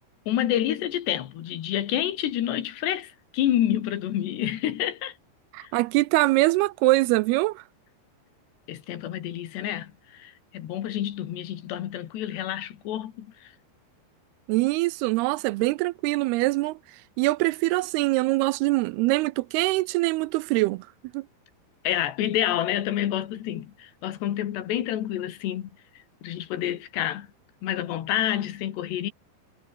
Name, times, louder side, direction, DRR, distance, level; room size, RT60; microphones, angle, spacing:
voice 1, 0.3-5.1 5.6-5.7 8.7-13.5 21.8-25.7 26.2-27.3 27.6-29.1, left 12 dB, 85° left, 4.1 m, -28 dB
voice 2, 5.5-7.6 14.5-20.9 21.1-21.3, right 21 dB, 80° right, 2.4 m, -23 dB
omnidirectional pair, 4.8 m